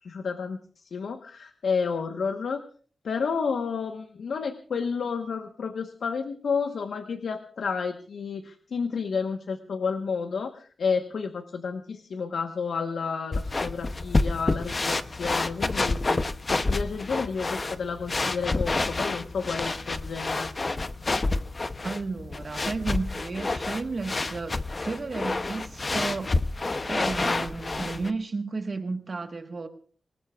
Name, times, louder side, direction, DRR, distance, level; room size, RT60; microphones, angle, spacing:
voice 1, 0.0-2.6 3.0-16.2 16.5-20.5, left 5 dB, 85° left, 1.2 m, -31 dB
sound 1, 13.3-28.1, left 3 dB, 30° left, 0.7 m, -29 dB
voice 2, 21.8-26.4 26.8-29.7, right 3 dB, 40° right, 1.4 m, -33 dB
26.0 x 19.5 x 2.4 m
wide cardioid pair, 155°, 0 cm